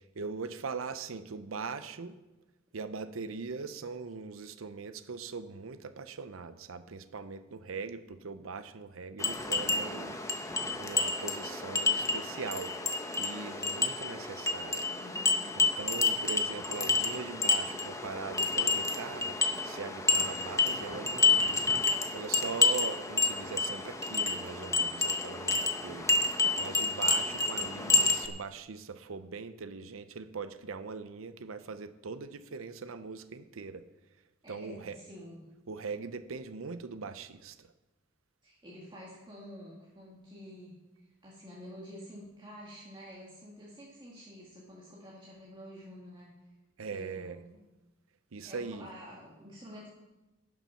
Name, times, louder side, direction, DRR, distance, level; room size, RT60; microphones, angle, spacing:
voice 1, 0.0-2.2 2.7-12.8 13.2-14.8 15.6-21.7 22.1-26.1 26.6-33.8 34.5-35.0 35.7-37.7 46.8-47.4 48.3-48.9, right 4 dB, 90° right, 12 dB, 0.6 m, -41 dB
sound 1, 9.2-28.3, left 3 dB, 15° left, 0.9 m, -29 dB
voice 2, 14.9-15.5 34.4-35.4 38.4-40.7 41.2-46.3 46.9-47.6 48.4-49.9, equal, 25° right, -6 dB, 2.0 m, -49 dB
11.5 x 7.2 x 5.7 m, 1.1 s
head